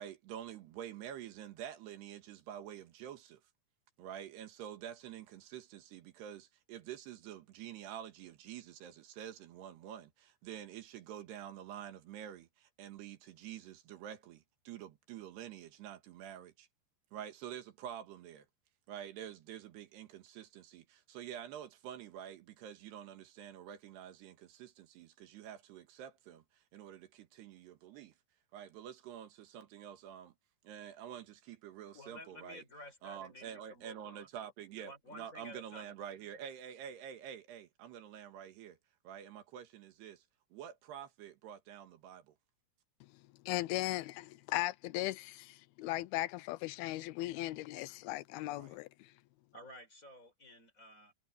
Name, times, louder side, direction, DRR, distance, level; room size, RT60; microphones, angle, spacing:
voice 1, 0.0-3.4 4.0-16.7 17.1-18.5 18.9-28.2 28.5-30.3 30.6-32.6 33.0-38.8 39.1-40.2 40.5-42.4 48.5-48.8, right 10 dB, 80° right, 3.7 m, -48 dB
voice 2, 31.9-34.3 34.7-35.9 49.5-51.1, left 1 dB, 20° left, 5.7 m, -52 dB
voice 3, 43.5-49.1, left 18 dB, 80° left, 2.4 m, -37 dB
omnidirectional pair, 4.7 m